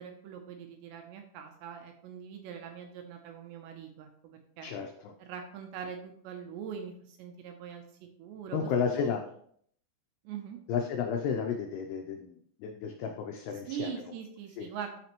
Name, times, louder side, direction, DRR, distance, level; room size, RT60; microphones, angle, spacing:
voice 1, 0.0-4.7 5.2-8.7 9.0-9.2 10.2-10.6 13.7-15.0, right 8 dB, 80° right, 4 dB, 2.7 m, -42 dB
voice 2, 4.6-5.1 8.5-9.2 10.7-14.2 14.6-14.7, left 6 dB, 85° left, 3 dB, 2.3 m, -32 dB
12.5 x 5.1 x 3.0 m, 0.64 s
omnidirectional pair, 5.6 m